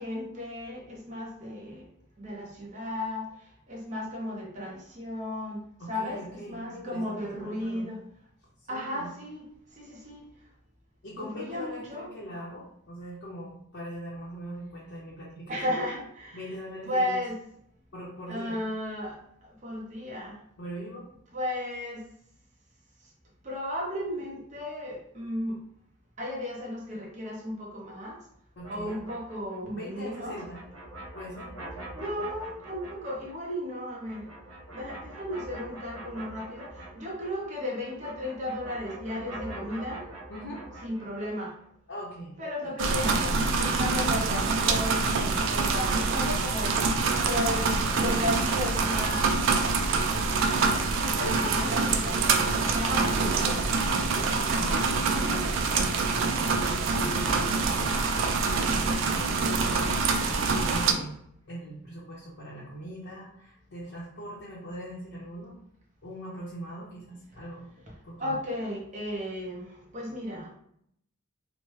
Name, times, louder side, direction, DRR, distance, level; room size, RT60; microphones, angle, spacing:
voice 1, 0.0-1.9 2.2-3.3 3.7-5.6 5.9-8.1 8.7-9.5 9.8-10.3 11.2-12.1 15.5-16.4 16.9-17.4 18.3-20.4 21.3-22.0 23.4-25.6 26.2-28.2 28.7-30.4 31.9-34.3 34.7-40.0 40.8-41.5 42.4-46.8 47.1-49.3 51.0-52.4 52.7-53.6 54.7-55.4 56.9-57.4 68.2-70.5, left 1 dB, 35° right, -3 dB, 0.7 m, -34 dB
voice 2, 5.8-7.9 8.6-9.1 11.0-15.8 16.3-17.2 17.9-18.6 20.6-21.1 28.6-29.0 29.7-30.6 31.1-31.5 40.3-40.6 41.9-42.3 51.1-52.0 52.7-53.7 54.0-55.8 56.1-61.1 61.5-65.6 66.0-67.7 68.0-68.3, equal, 60° left, -7 dB, 0.7 m, -41 dB
sound 1, 28.6-37.5 37.8-41.4, right 1 dB, 85° right, 0.9 m, -44 dB
sound 2, 42.8-60.9, right 4 dB, 60° right, 0.3 m, -25 dB
3.0 x 2.0 x 3.0 m, 0.71 s
head